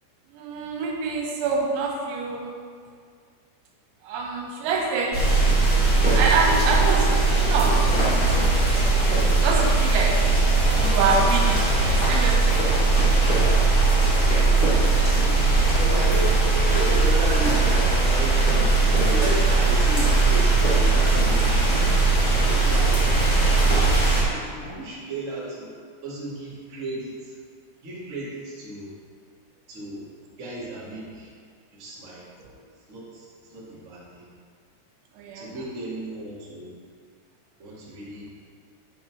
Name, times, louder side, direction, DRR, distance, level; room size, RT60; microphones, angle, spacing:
voice 1, 0.3-2.5 4.0-5.2 6.1-8.0 8.4-8.8 9.4-10.2 10.8-12.8 24.6-24.8 32.4-32.5 35.2-35.6, right 4 dB, 80° right, 0 dB, 3.3 m, -26 dB
sound 1, 5.1-24.2, right 3 dB, 55° left, 0.4 m, -19 dB
voice 2, 14.1-15.0 15.8-21.6 22.2-23.1 23.6-25.7 26.0-27.3 27.8-28.9 29.7-30.0 30.4-31.3 31.7-32.3 32.9-34.3 35.3-36.7 37.6-38.3, right 1 dB, 45° right, -8 dB, 0.9 m, -34 dB
9.1 x 5.6 x 4.7 m, 2.1 s
omnidirectional pair, 5.2 m